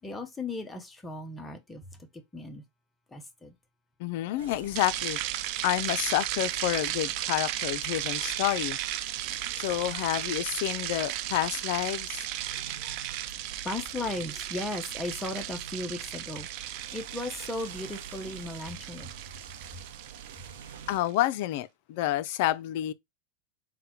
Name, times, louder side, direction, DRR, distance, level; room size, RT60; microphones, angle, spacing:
voice 1, 0.0-2.1 2.3-2.6 3.1-3.5 7.9-8.0 9.5-9.8 12.3-13.0 13.3-13.4 13.6-19.1, left 2 dB, 10° left, 0.6 m, -37 dB
voice 2, 4.0-5.2 5.6-8.8 9.5-12.3 20.9-22.9, left 14 dB, 50° left, 0.4 m, -29 dB
sound 1, 4.4-21.0, right 7 dB, 85° right, 0.8 m, -47 dB
sound 2, 4.8-21.0, right 13 dB, 45° right, 0.4 m, -35 dB
3.9 x 2.1 x 4.3 m
supercardioid pair, 155°, 0 cm